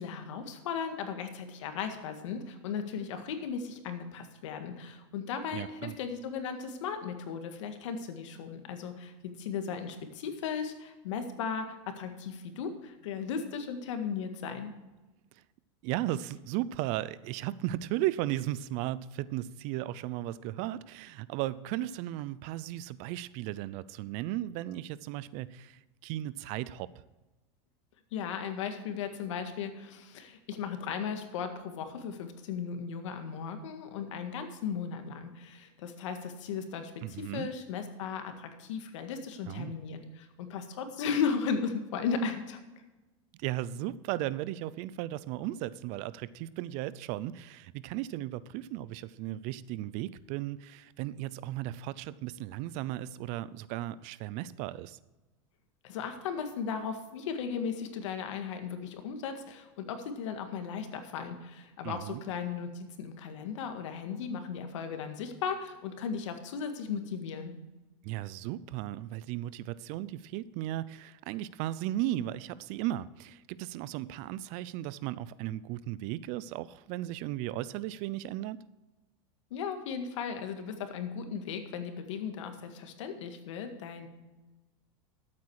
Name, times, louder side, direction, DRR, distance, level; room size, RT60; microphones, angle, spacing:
voice 1, 0.0-14.7 28.1-42.6 55.8-67.5 79.5-84.1, left 6 dB, 80° left, 7 dB, 1.8 m, -36 dB
voice 2, 5.5-6.0 15.8-26.9 37.0-37.5 39.5-39.7 43.4-55.0 61.8-62.2 68.0-78.6, right 14 dB, 50° right, 18 dB, 0.5 m, -36 dB
13.0 x 8.5 x 4.8 m, 1.1 s
supercardioid pair, 140°, 15 cm